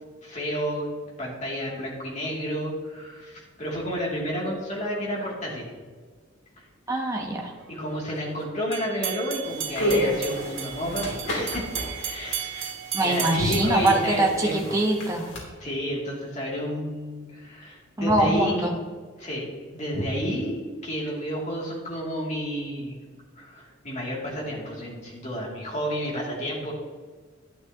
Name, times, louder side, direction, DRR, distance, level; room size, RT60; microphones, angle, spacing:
voice 1, 0.2-0.9 1.2-5.7 6.6-6.7 7.7-12.7 13.0-14.8 15.6-18.7 19.2-23.0 23.4-26.7, equal, 35° left, -4 dB, 2.7 m, -31 dB
voice 2, 6.9-7.5 12.9-15.3 18.0-18.7, right 1 dB, 15° right, 0 dB, 1.1 m, -23 dB
sound 1, 8.7-15.0, right 10 dB, 70° right, 0.7 m, -35 dB
sound 2, 9.4-15.4, left 1 dB, 75° left, 2.9 m, -30 dB
11.5 x 10.0 x 2.9 m, 1.5 s
head